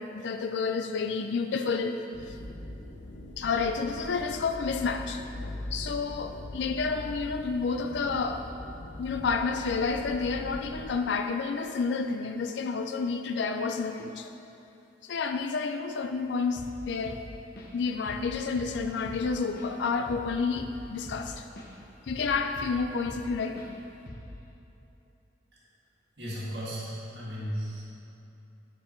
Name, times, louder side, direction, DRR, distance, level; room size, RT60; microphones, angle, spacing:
voice 1, 0.0-2.0 3.4-8.4 9.0-14.3 15.0-17.2 17.7-21.5 22.1-23.6, left 4 dB, 70° left, 6 dB, 0.4 m, -30 dB
sound 1, 2.1-10.8, left 1 dB, 90° left, 0.8 m, -41 dB
Drum kit / Drum, 16.6-16.8 17.1-17.8 18.1-18.3 18.6-21.7 22.1-23.3 23.6-23.7 24.1-24.4, left 1 dB, 50° left, 0.9 m, -43 dB
voice 2, 26.2-27.8, equal, 65° right, -7 dB, 1.7 m, -35 dB
7.9 x 4.8 x 4.4 m, 2.9 s
head